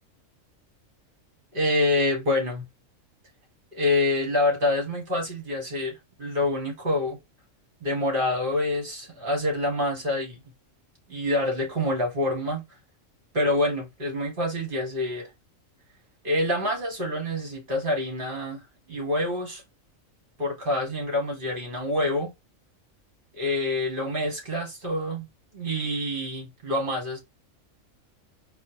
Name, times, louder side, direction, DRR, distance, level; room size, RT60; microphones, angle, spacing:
voice 1, 1.5-2.6 3.7-7.2 7.8-10.4 11.1-12.6 13.3-15.3 16.2-18.6 18.9-19.6 20.4-22.3 23.4-25.3 25.5-27.2, left 1 dB, 40° right, 1.6 m, -26 dB
4.2 x 2.4 x 2.8 m
omnidirectional pair, 1.4 m